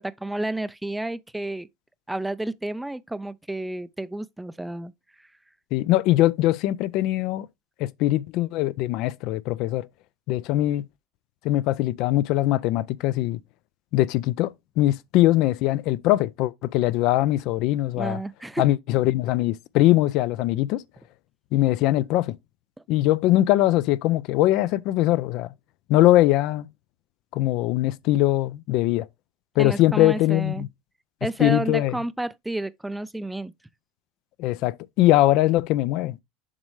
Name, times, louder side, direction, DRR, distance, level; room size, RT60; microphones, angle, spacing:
voice 1, 0.0-1.7 2.1-4.9 17.9-18.6 29.6-30.7 31.2-33.5, right 1 dB, 5° right, 0.4 m, -31 dB
voice 2, 5.7-7.5 7.8-9.9 10.3-10.8 11.4-13.4 13.9-18.2 18.6-20.8 21.5-22.4 22.9-25.5 25.9-26.7 27.3-29.1 29.6-30.7 31.4-32.0 34.4-36.2, left 15 dB, 60° left, 0.4 m, -21 dB
7.3 x 5.2 x 3.1 m
supercardioid pair, 110°, 0 cm